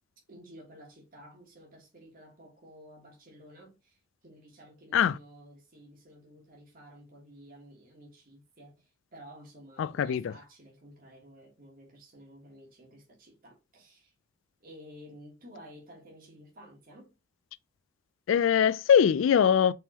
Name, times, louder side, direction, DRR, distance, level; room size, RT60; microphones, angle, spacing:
voice 1, 0.3-14.1 14.6-17.1, equal, 45° right, 1.5 m, -53 dB
voice 2, 9.8-10.3 18.3-19.7, left 8 dB, 75° left, 0.3 m, -22 dB
4.4 x 3.6 x 2.8 m
head